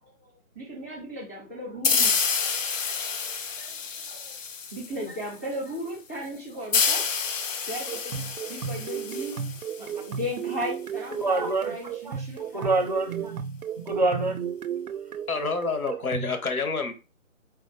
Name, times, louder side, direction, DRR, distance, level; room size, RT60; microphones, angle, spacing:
voice 1, 0.0-2.2 3.2-3.3 3.6-4.4 4.7-7.3 7.6-12.7, equal, 10° left, -2 dB, 0.6 m, -37 dB
sound 1, 1.8-5.2 6.7-10.2, left 5 dB, 65° left, 0.7 m, -28 dB
sound 2, 7.9-16.4, right 7 dB, 80° right, 0.6 m, -34 dB
voice 2, 11.2-11.7 12.1-12.2 12.5-13.6 13.8-14.5, right 3 dB, 30° right, 6 dB, 0.6 m, -26 dB
voice 3, 15.3-16.9, left 4 dB, 85° left, 7 dB, 1.2 m, -28 dB
4.0 x 2.6 x 4.2 m, 0.30 s
figure-of-eight pair, 160°, 42 cm